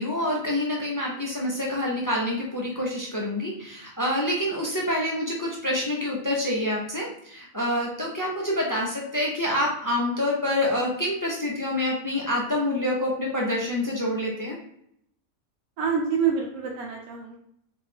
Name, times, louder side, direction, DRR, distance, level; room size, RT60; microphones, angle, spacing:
voice 1, 0.0-14.6, left 1 dB, 30° left, -2 dB, 0.3 m, -27 dB
voice 2, 15.8-17.4, right 6 dB, 80° right, 0 dB, 1.1 m, -26 dB
3.4 x 3.1 x 3.5 m, 0.71 s
omnidirectional pair, 1.5 m